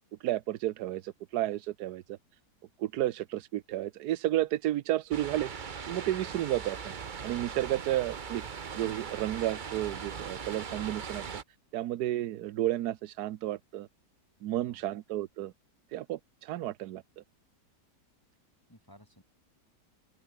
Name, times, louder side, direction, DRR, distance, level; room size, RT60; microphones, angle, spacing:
voice 1, 0.2-2.2 2.8-5.5 5.9-6.9 7.2-8.4 8.8-11.3 11.7-13.9 14.4-15.5 15.9-17.0, right 14 dB, 70° right, 1.2 m, -32 dB
sound 1, 5.1-11.4, right 6 dB, 35° right, 0.8 m, -40 dB
voice 2, 14.4-14.8 18.7-19.2, equal, 10° left, 3.6 m, -56 dB
open air
omnidirectional pair, 1.8 m